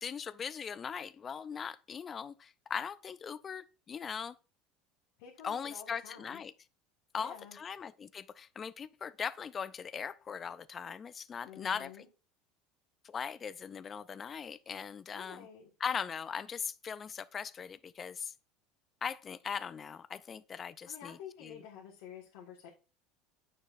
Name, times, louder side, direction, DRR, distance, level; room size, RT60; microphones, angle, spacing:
voice 1, 0.0-4.4 5.4-6.5 7.1-12.0 13.0-15.5 15.8-18.3 19.0-21.6, left 7 dB, 30° left, 0.4 m, -40 dB
voice 2, 5.2-6.4 7.2-7.6 11.4-12.1 15.1-15.7 20.8-22.7, left 8 dB, 75° left, 1.6 m, -49 dB
9.3 x 6.5 x 2.5 m
supercardioid pair, 115°, 0 cm